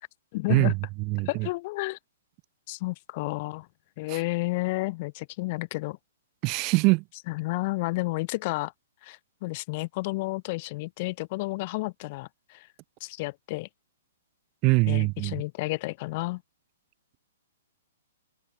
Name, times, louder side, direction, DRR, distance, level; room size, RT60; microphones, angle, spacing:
voice 1, 0.3-0.7 1.3-2.0 2.7-3.7 4.0-6.0 7.3-8.7 9.0-12.7 13.0-13.7 14.9-16.4, left 23 dB, 45° left, 4.5 m, -31 dB
voice 2, 1.1-1.5 4.1-4.2 6.4-7.0 14.6-15.4, right 27 dB, 35° right, 3.8 m, -23 dB
hypercardioid pair, 125°, 0 cm